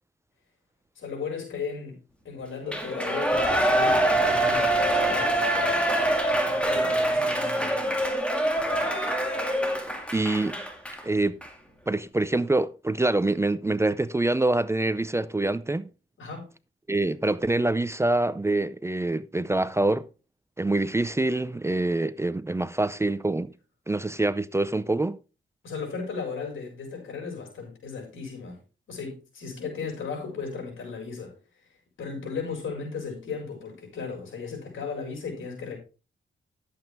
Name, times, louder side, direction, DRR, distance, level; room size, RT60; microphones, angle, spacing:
voice 1, 1.0-5.9 6.4-7.9 16.2-16.5 25.6-28.6 28.9-31.4 32.0-35.8, left 5 dB, 85° left, 5.3 m, -36 dB
Shout / Cheering, 2.7-11.0 11.4-11.5, right 1 dB, 5° left, 2.2 m, -24 dB
voice 2, 10.1-10.6 11.0-11.4 11.9-15.9 16.9-20.1 20.6-23.5 23.9-25.2, right 2 dB, 15° right, 0.4 m, -25 dB
11.5 x 7.8 x 3.5 m
cardioid pair, 90°, 20 cm